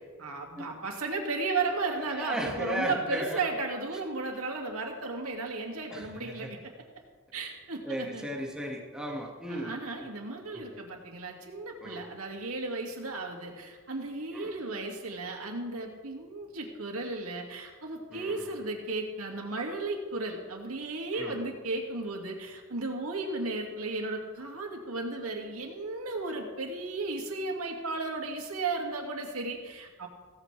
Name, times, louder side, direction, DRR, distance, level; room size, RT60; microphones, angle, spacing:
voice 1, 0.2-6.6 7.3-8.3 9.5-30.1, right 3 dB, 90° right, 1 dB, 2.4 m, -34 dB
voice 2, 2.1-3.4 5.9-6.5 7.9-9.7 10.5-10.6 11.8-12.0 14.3-14.5 18.1-18.5 21.1-21.4, equal, 5° right, -1 dB, 2.0 m, -36 dB
16.5 x 14.5 x 3.4 m, 1.4 s
head